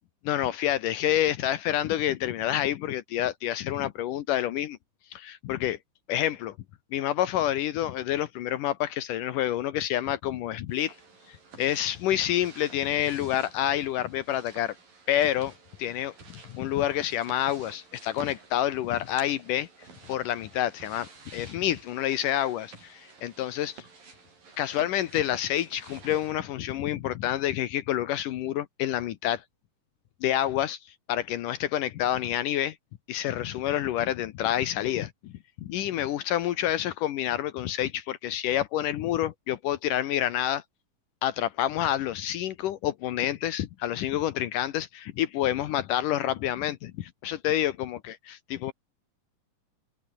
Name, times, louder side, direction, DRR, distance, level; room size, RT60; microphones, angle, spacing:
voice 1, 0.2-4.8 5.1-5.8 6.1-6.6 6.9-11.0 11.3-14.8 15.1-15.5 15.8-19.7 20.1-23.8 24.6-29.4 30.2-32.8 33.1-35.3 35.6-40.6 41.2-48.7, left 12 dB, 75° left, 2.6 m, -28 dB
sound 1, 10.7-26.3, right 4 dB, 80° right, 8.7 m, -51 dB
open air
omnidirectional pair, 3.9 m